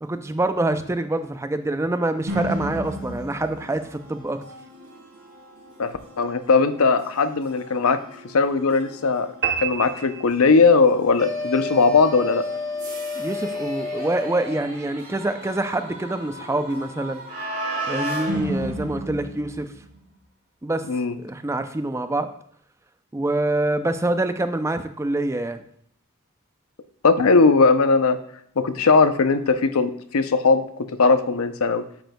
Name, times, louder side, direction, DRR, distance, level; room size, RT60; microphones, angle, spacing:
voice 1, 0.0-4.4 13.2-17.2 17.9-19.7 20.6-20.8 21.2-22.3 23.1-25.6, right 2 dB, 10° right, 9 dB, 0.4 m, -26 dB
sound 1, 2.3-20.0, right 1 dB, 75° right, 3.1 m, -35 dB
voice 2, 6.2-8.0 8.3-9.3 9.6-12.4 20.9-21.1 27.0-28.2 28.6-31.8, left 4 dB, 70° left, 10 dB, 0.6 m, -19 dB
sound 2, 9.4-11.0, right 8 dB, 45° right, 1.0 m, -29 dB
sound 3, 11.2-14.7, left 3 dB, 15° left, 2.2 m, -30 dB
8.8 x 7.9 x 2.2 m, 0.64 s
head